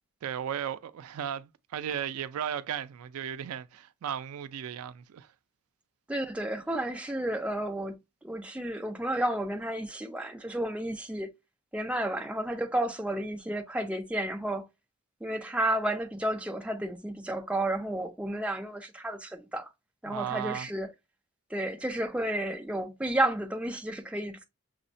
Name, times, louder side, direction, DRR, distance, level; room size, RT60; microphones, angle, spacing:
voice 1, 0.2-5.3 20.1-20.7, right 9 dB, 85° right, 0.3 m, -35 dB
voice 2, 6.1-11.3 11.7-14.7 15.2-19.7 20.0-20.9 21.5-24.4, right 1 dB, 5° right, 0.4 m, -32 dB
6.0 x 2.1 x 2.5 m
head